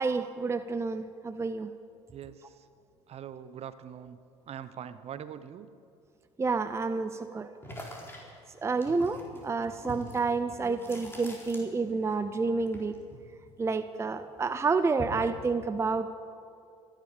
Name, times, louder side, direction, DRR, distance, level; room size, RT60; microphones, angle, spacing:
voice 1, 0.0-1.7 6.4-7.5 8.6-12.9 13.6-16.1, right 4 dB, 20° right, 11 dB, 0.6 m, -29 dB
voice 2, 2.1-2.6 3.1-4.2 4.5-5.7 9.3-9.5, right 9 dB, 45° right, 14 dB, 0.9 m, -43 dB
sound 1, 7.6-12.1 12.4-14.0 14.4-15.4, equal, 15° left, 4.0 m, -44 dB
26.0 x 10.5 x 5.2 m, 2.5 s
hypercardioid pair, 65°, 15 cm